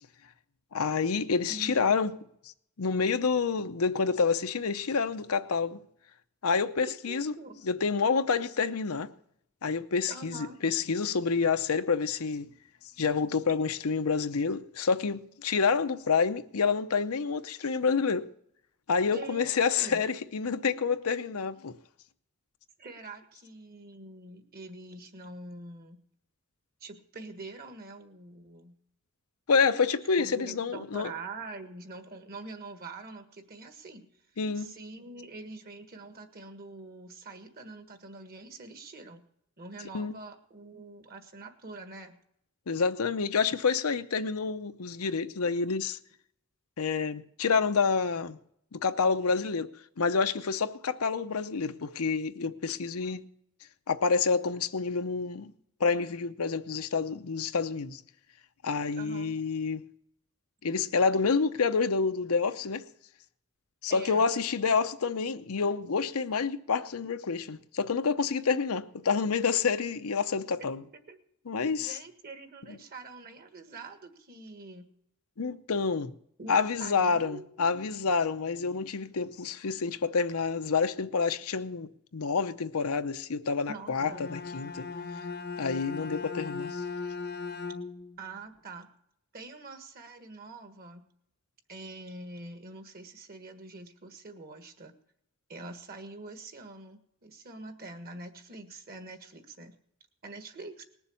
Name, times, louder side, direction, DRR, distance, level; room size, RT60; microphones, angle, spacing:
voice 1, 0.7-2.1 2.8-5.8 6.4-7.3 7.6-9.1 9.6-12.5 13.0-18.3 18.9-21.8 29.5-31.1 34.4-34.7 39.9-40.1 42.7-46.0 46.8-48.4 48.7-49.7 50.0-53.3 53.9-55.5 55.8-58.0 58.6-59.8 60.6-62.9 63.8-70.8 71.5-72.0 72.7-72.8 75.4-76.2 76.5-84.9 85.6-86.8, left 5 dB, 85° left, 0.7 m, -28 dB
voice 2, 1.5-1.9 6.8-7.6 10.1-10.6 19.0-20.0 22.8-26.0 26.8-28.8 30.2-34.1 34.6-39.2 39.6-42.2 59.0-59.3 63.9-64.2 70.6-70.7 70.9-71.2 71.8-74.9 76.4-77.5 83.7-84.2 88.2-88.9 89.3-91.1 91.7-94.9 95.5-99.7 100.2-100.9, right 3 dB, 45° right, 1.6 m, -45 dB
Bowed string instrument, 83.9-88.2, left 4 dB, 50° left, 0.8 m, -38 dB
19.5 x 7.1 x 7.1 m
head